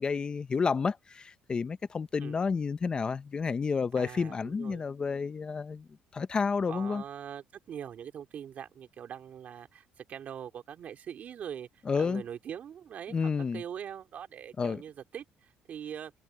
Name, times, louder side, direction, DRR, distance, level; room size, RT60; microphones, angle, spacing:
voice 1, 0.0-7.0 11.9-12.2 13.1-13.6 14.6-14.8, left 5 dB, 30° left, 0.6 m, -30 dB
voice 2, 4.0-4.8 6.7-11.7 12.0-16.1, right 9 dB, 50° right, 2.7 m, -42 dB
cardioid pair, 130°, 3 cm